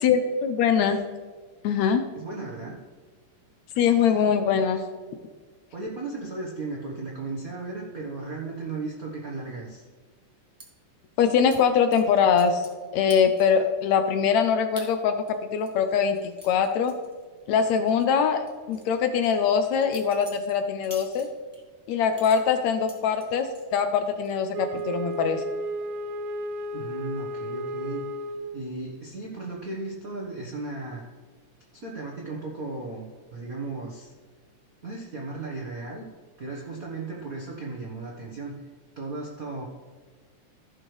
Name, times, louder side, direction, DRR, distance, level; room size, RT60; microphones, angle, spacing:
voice 1, 0.0-1.1 1.6-2.0 3.8-4.8 11.2-12.6 12.9-16.2 16.4-17.0 17.5-21.3 21.9-25.4, left 7 dB, 75° left, 8 dB, 1.8 m, -23 dB
voice 2, 2.1-2.8 5.7-9.8 26.7-28.1 28.5-31.0 31.7-34.1 34.8-36.0 36.4-38.6 39.0-39.6, right 3 dB, 60° right, -2 dB, 0.9 m, -35 dB
sound 1, 10.6-10.7 11.5-11.6 11.9-12.8 13.1-13.6 14.1-14.2 14.8-14.9 15.3-17.6 17.9-18.0 18.5-21.6 22.1-23.7 24.1-24.5 24.8-25.2, right 1 dB, 15° right, 0.6 m, -47 dB
Wind instrument woodwind instrument, 24.5-28.7, right 1 dB, 75° right, 1.7 m, -33 dB
15.0 x 6.1 x 3.3 m, 1.5 s
omnidirectional pair, 3.5 m